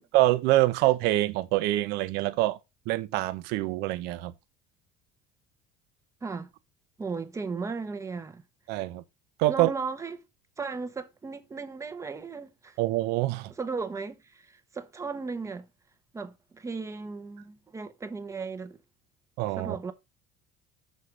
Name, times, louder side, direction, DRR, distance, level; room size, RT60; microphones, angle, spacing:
voice 1, 0.1-2.6 2.9-4.3 8.7-9.0 9.4-9.7 12.8-13.5 19.4-19.8, right 17 dB, 75° right, 0.8 m, -25 dB
voice 2, 7.0-8.4 9.5-10.2 10.6-12.8 13.6-15.7 16.1-18.8 19.6-19.9, right 4 dB, 15° right, 0.9 m, -36 dB
6.6 x 4.4 x 4.7 m
cardioid pair, 130°, 17 cm